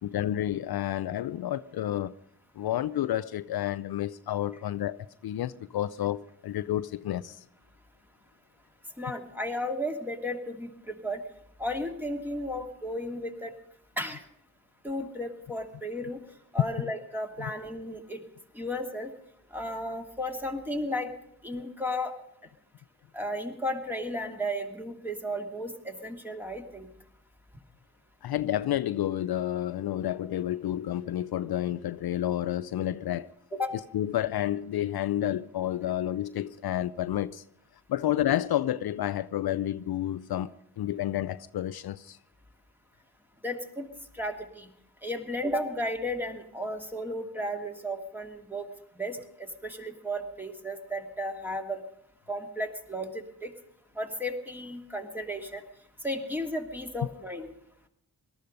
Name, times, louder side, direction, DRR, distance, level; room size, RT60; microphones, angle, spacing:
voice 1, 0.0-2.1 2.6-7.4 17.4-17.5 28.2-33.7 33.9-37.4 37.9-40.5 40.8-42.2, left 12 dB, 65° left, 0.5 m, -30 dB
voice 2, 9.0-11.2 11.6-13.5 14.0-14.2 14.8-16.2 16.5-18.2 18.5-19.1 19.5-21.1 21.4-22.1 23.1-26.9 33.6-33.8 43.4-43.9 44.1-44.7 45.0-48.7 48.9-51.8 52.3-53.5 54.0-55.6 56.0-57.5, equal, 5° right, 2.7 m, -34 dB
18.5 x 13.0 x 5.3 m
supercardioid pair, 45°, 40 cm